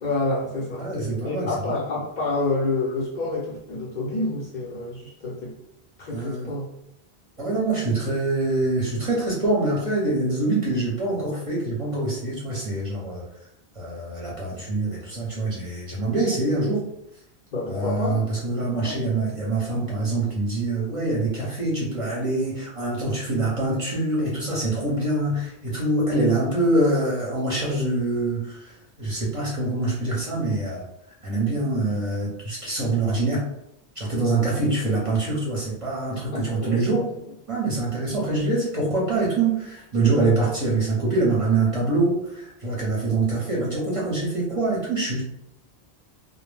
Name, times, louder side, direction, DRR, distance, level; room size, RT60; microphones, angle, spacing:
voice 1, 0.0-0.9 1.2-5.5 6.0-6.7 17.5-18.2 18.7-19.4 36.3-36.8, left 2 dB, 55° left, -4 dB, 0.6 m, -28 dB
voice 2, 0.8-1.8 6.1-6.5 7.4-13.2 13.8-16.8 17.6-30.8 31.2-33.5 34.0-37.0 37.5-45.2, right 2 dB, 35° right, -5 dB, 0.7 m, -25 dB
2.1 x 2.0 x 3.2 m, 0.82 s
omnidirectional pair, 1.1 m